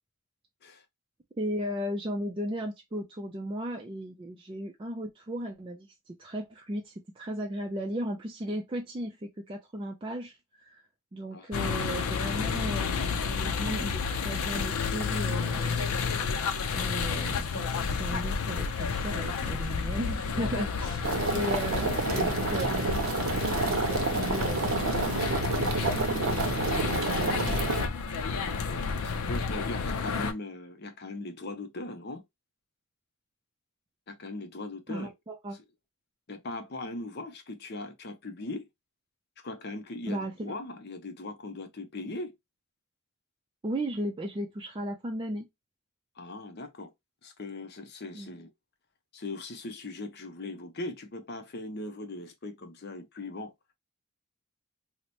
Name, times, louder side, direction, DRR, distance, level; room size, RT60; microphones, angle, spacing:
voice 1, 1.4-10.8 11.1-15.9 16.7-21.0 21.3-23.0 23.4-25.1 26.2-27.5 34.9-35.6 40.1-40.5 43.6-45.5 48.1-48.3, equal, 25° right, 0.4 m, -36 dB
voice 2, 11.3-11.6 22.1-22.3 28.2-32.2 34.1-35.1 36.3-38.7 39.4-42.3 46.2-46.9 47.2-48.5 49.1-53.5, left 2 dB, 50° left, 0.7 m, -39 dB
sound 1, 11.5-30.3, left 5 dB, 90° left, 0.5 m, -31 dB
sound 2, 21.0-27.9, right 3 dB, 85° right, 0.7 m, -29 dB
2.9 x 2.1 x 4.1 m
head